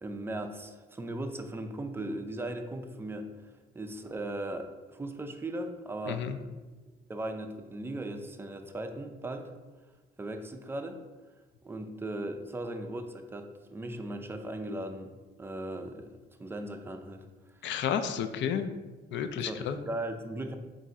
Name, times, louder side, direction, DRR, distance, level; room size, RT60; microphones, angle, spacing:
voice 1, 0.0-3.3 3.7-6.2 7.1-9.5 10.2-11.0 11.6-17.3 19.4-20.6, right 1 dB, 10° right, 6 dB, 0.4 m, -38 dB
voice 2, 6.1-6.4 17.6-18.7 19.1-19.8, left 8 dB, 65° left, 8 dB, 0.4 m, -31 dB
3.6 x 2.5 x 4.0 m, 1.2 s
cardioid pair, 90°, 20 cm